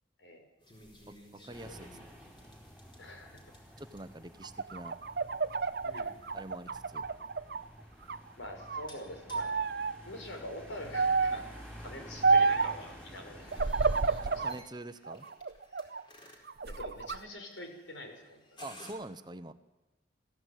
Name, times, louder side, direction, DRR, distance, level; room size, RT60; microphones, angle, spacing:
sound 1, 0.6-18.9, left 1 dB, 25° left, 4.6 m, -58 dB
voice 1, 1.1-2.1 3.8-5.0 6.3-7.0 14.2-15.3 18.6-19.5, right 2 dB, 20° right, 10 dB, 0.9 m, -45 dB
sound 2, 1.5-14.5, equal, 5° left, 6.7 m, -51 dB
voice 2, 3.0-3.4 5.8-6.2 8.4-9.5 10.0-11.5 11.8-13.5 13.9-14.6 16.7-18.6, left 1 dB, 80° left, 4 dB, 5.3 m, -45 dB
sound 3, 4.4-7.6 8.0-8.9 9.3-9.9 10.9-11.5 12.2-12.8 13.5-14.6 15.1-16.0 16.5-17.2, right 4 dB, 55° right, 0.7 m, -29 dB
22.5 x 15.0 x 9.2 m, 1.1 s
head